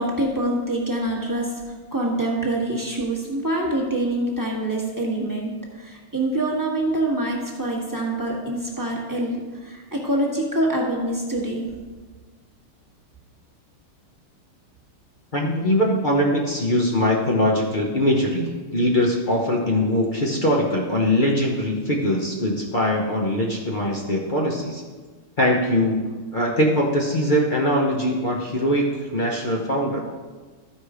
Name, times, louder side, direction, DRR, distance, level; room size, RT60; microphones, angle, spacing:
voice 1, 0.0-11.7, right 1 dB, 10° right, -2 dB, 1.1 m, -25 dB
voice 2, 15.3-24.8 25.4-30.0, left 1 dB, 90° left, -2 dB, 0.4 m, -22 dB
13.5 x 4.9 x 5.0 m, 1.4 s
omnidirectional pair, 2.4 m